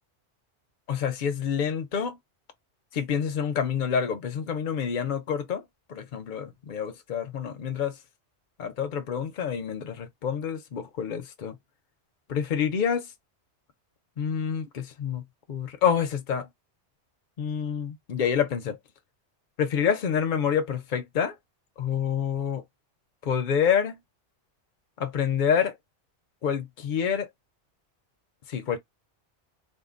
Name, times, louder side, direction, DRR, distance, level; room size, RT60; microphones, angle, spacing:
voice 1, 0.9-2.2 2.9-5.6 5.9-7.9 8.6-11.6 12.3-13.1 14.2-15.2 15.5-16.5 17.4-18.8 19.6-21.3 21.8-22.6 23.2-24.0 25.0-25.7 26.4-27.3 28.5-28.8, left 7 dB, 50° left, 0.7 m, -27 dB
3.5 x 2.2 x 2.4 m
omnidirectional pair, 1.2 m